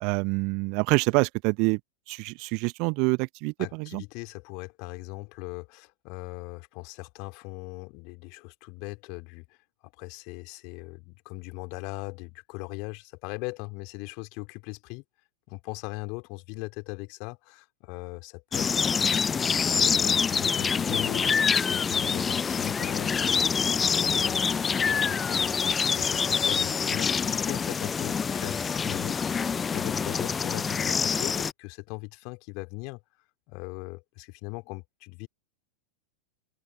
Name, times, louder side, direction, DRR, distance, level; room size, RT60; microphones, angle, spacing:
voice 1, 0.0-1.8 2.1-4.0, right 31 dB, 45° right, 0.7 m, -26 dB
voice 2, 3.6-9.6 10.0-15.0 15.5-19.2 19.7-29.2 29.7-33.0 33.5-35.3, left 31 dB, 45° left, 2.3 m, -39 dB
sound 1, 18.5-31.5, left 6 dB, 20° left, 0.6 m, -26 dB
open air
figure-of-eight pair, 90°, 0 cm